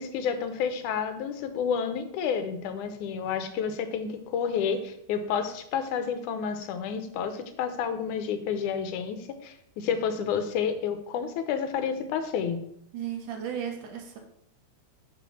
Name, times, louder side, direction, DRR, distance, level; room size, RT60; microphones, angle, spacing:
voice 1, 0.0-12.6, left 7 dB, 85° left, 8 dB, 2.4 m, -30 dB
voice 2, 12.9-14.2, right 9 dB, 85° right, 3 dB, 2.9 m, -34 dB
6.1 x 5.4 x 7.0 m, 0.72 s
omnidirectional pair, 3.4 m